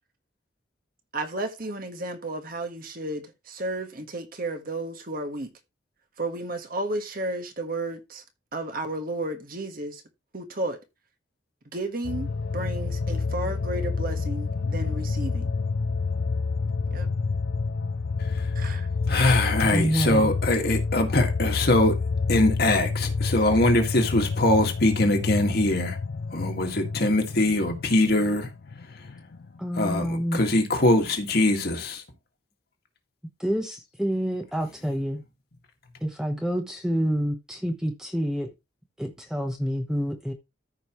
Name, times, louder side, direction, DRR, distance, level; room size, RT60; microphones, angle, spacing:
voice 1, 1.1-5.5 6.2-8.2 8.5-10.0 10.3-10.8 11.7-12.3 12.5-15.5 16.9-17.1 18.5-18.9, right 2 dB, 50° right, 1.5 m, -32 dB
sound 1, 12.0-29.6 29.9-30.0, left 4 dB, 75° left, 0.5 m, -28 dB
voice 2, 19.1-22.0 22.3-26.0 26.3-28.5 29.8-32.0, left 1 dB, 55° left, 1.9 m, -22 dB
voice 3, 19.7-20.3 29.6-30.4 33.4-35.2 36.0-38.5 39.0-40.3, equal, 5° right, 0.9 m, -28 dB
14.0 x 5.3 x 3.1 m
head